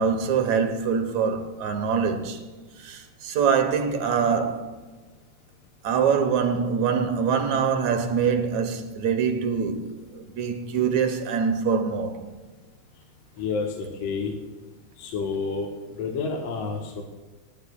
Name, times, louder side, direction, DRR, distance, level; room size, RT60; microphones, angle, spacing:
voice 1, 0.0-2.4 2.8-4.7 5.8-12.2, right 6 dB, 70° right, 2.3 m, -24 dB
voice 2, 13.4-14.3 15.0-15.7 16.0-17.0, left 4 dB, 60° left, 2.2 m, -29 dB
28.5 x 10.0 x 2.3 m
omnidirectional pair, 3.5 m